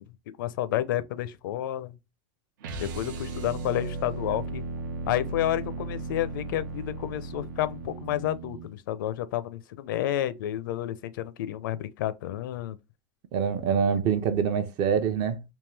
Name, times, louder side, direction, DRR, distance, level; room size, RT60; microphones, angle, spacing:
voice 1, 0.4-2.0 2.8-4.6 5.1-12.8 13.7-13.8, left 12 dB, 85° left, 0.5 m, -30 dB
sound 1, 2.6-8.7, right 3 dB, 80° right, 0.8 m, -36 dB
voice 2, 13.3-15.4, right 7 dB, 40° right, 0.6 m, -25 dB
3.6 x 2.6 x 3.2 m
supercardioid pair, 160°, 11 cm